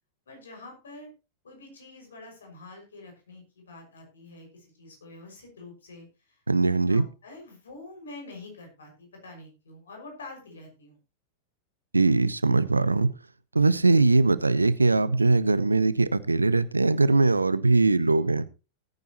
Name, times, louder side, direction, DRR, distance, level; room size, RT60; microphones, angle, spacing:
voice 1, 0.3-1.1 1.4-11.0 12.7-12.9, left 2 dB, 65° left, 3 dB, 6.0 m, -46 dB
voice 2, 6.5-7.0 11.9-13.1 13.5-18.5, right 3 dB, 80° right, 17 dB, 0.7 m, -21 dB
18.0 x 9.4 x 3.0 m, 0.30 s
figure-of-eight pair, 90°, 0 cm